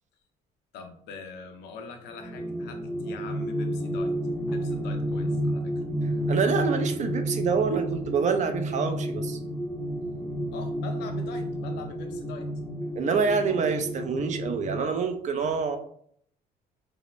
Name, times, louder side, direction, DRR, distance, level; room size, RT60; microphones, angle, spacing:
voice 1, 0.7-4.1 4.4-5.8 10.5-12.5, left 5 dB, 85° left, 6 dB, 0.6 m, -43 dB
sound 1, 2.1-14.9, equal, 5° left, 0.6 m, -31 dB
voice 2, 6.3-9.4 13.0-15.8, right 5 dB, 45° right, 7 dB, 0.5 m, -26 dB
3.2 x 2.7 x 3.0 m, 0.65 s
cardioid pair, 110°, 17 cm